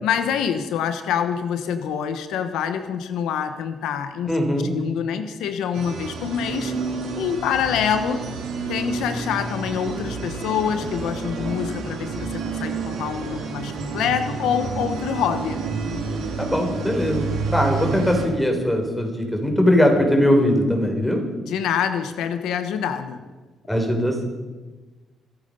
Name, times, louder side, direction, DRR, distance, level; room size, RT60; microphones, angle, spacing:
voice 1, 0.0-4.3 4.7-6.7 7.2-8.3 8.7-15.6 21.4-23.2, left 8 dB, 85° left, 9 dB, 1.0 m, -26 dB
voice 2, 4.3-4.7 16.4-21.3 23.7-24.3, equal, 5° left, 3 dB, 4.0 m, -20 dB
sound 1, 5.7-18.2, right 4 dB, 90° right, 4.5 m, -29 dB
26.5 x 9.0 x 5.5 m, 1.3 s
cardioid pair, 90°, 0 cm